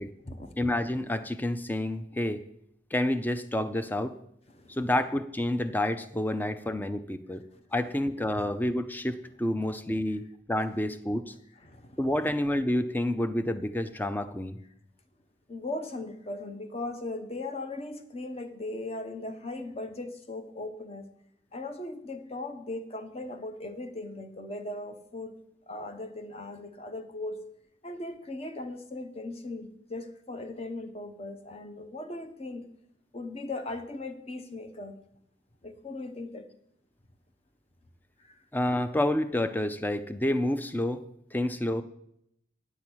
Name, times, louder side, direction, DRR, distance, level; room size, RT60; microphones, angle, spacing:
voice 1, 0.6-2.4 2.9-4.1 4.7-7.4 7.7-11.3 12.0-14.6 38.5-41.0 41.3-41.8, left 1 dB, 10° left, 11 dB, 0.5 m, -29 dB
voice 2, 11.6-12.0 15.5-21.1 21.5-25.4 25.7-27.4 27.8-32.6 33.1-35.0 35.6-36.5 38.2-38.4, left 2 dB, 35° left, 8 dB, 0.9 m, -38 dB
10.5 x 7.2 x 6.2 m, 0.75 s
head